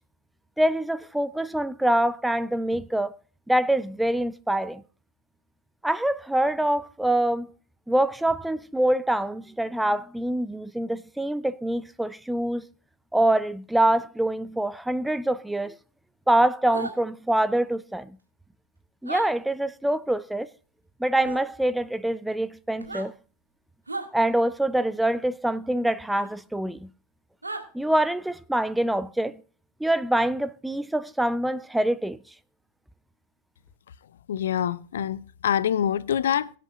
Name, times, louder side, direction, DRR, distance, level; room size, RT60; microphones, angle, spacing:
voice 1, 0.6-3.2 3.5-4.8 5.8-7.5 7.9-12.6 13.1-15.8 16.3-18.2 19.0-20.5 21.0-23.1 24.1-26.9 27.7-29.4 29.8-32.2, right 1 dB, 5° right, 0.5 m, -25 dB
sound 1, 16.7-16.9 19.0-19.3 21.2-21.4 22.8-23.1 23.9-24.1 26.2-26.3 27.4-27.6, right 3 dB, 80° right, 2.0 m, -34 dB
voice 2, 34.3-36.5, left 9 dB, 60° left, 0.6 m, -25 dB
22.5 x 8.5 x 2.4 m
figure-of-eight pair, 90°, 0 cm